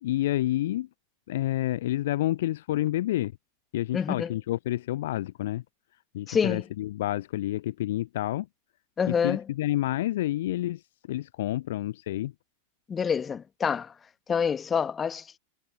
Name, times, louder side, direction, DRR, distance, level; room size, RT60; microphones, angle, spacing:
voice 1, 0.0-0.9 1.3-3.3 3.7-5.6 6.1-8.5 9.1-10.8 11.1-12.3, left 14 dB, 55° left, 0.4 m, -29 dB
voice 2, 3.9-4.3 6.3-6.7 9.0-9.4 12.9-13.9 14.3-15.4, left 6 dB, 20° left, 1.5 m, -27 dB
figure-of-eight pair, 90°, 0 cm